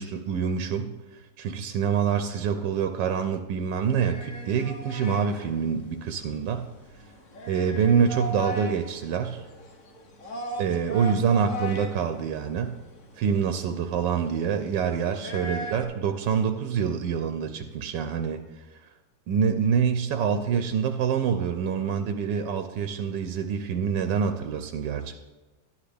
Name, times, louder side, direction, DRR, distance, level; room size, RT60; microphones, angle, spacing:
voice 1, 0.0-6.6 7.5-9.4 10.6-12.7 13.2-18.4 19.3-25.2, right 7 dB, 85° right, 7 dB, 1.3 m, -26 dB
sound 1, 3.8-15.8, equal, 50° left, 1.4 m, -39 dB
12.0 x 9.7 x 3.4 m, 1.2 s
omnidirectional pair, 1.9 m